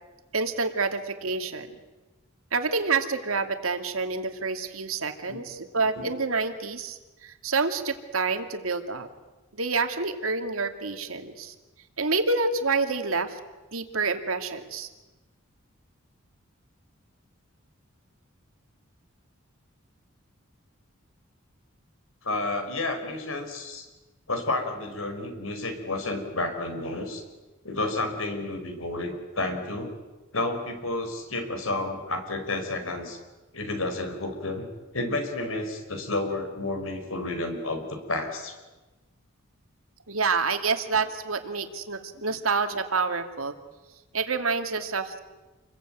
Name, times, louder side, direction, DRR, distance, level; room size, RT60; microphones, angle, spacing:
voice 1, 0.3-1.7 2.5-9.1 9.5-11.5 12.0-13.4 13.7-14.9 40.1-43.5 44.1-45.2, right 4 dB, 90° right, 7 dB, 2.4 m, -28 dB
voice 2, 22.2-23.9 24.3-27.2 27.6-29.9 30.3-33.2 33.5-34.7 34.9-38.5 42.1-42.2, left 2 dB, 80° left, 6 dB, 5.5 m, -31 dB
28.5 x 22.5 x 9.3 m, 1.1 s
head